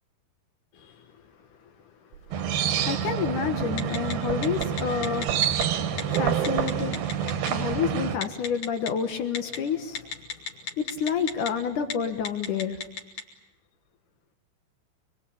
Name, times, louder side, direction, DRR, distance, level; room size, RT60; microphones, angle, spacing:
sound 1, 2.1-7.8, right 10 dB, 80° right, 3.9 m, -36 dB
sound 2, 2.3-8.2, right 9 dB, 65° right, 2.9 m, -28 dB
voice 1, 2.9-5.3 6.2-7.0 7.5-10.0 10.8-12.8, left 7 dB, 65° left, 7 dB, 2.0 m, -29 dB
Telephone, 3.8-4.1 4.4-5.6 6.0-6.2 6.4-7.5 8.2-8.9 9.4-9.6 10.0-11.5 11.8-11.9 12.3-13.2, left 6 dB, 45° left, 3.4 m, -32 dB
26.0 x 23.0 x 8.6 m, 0.94 s
omnidirectional pair, 5.6 m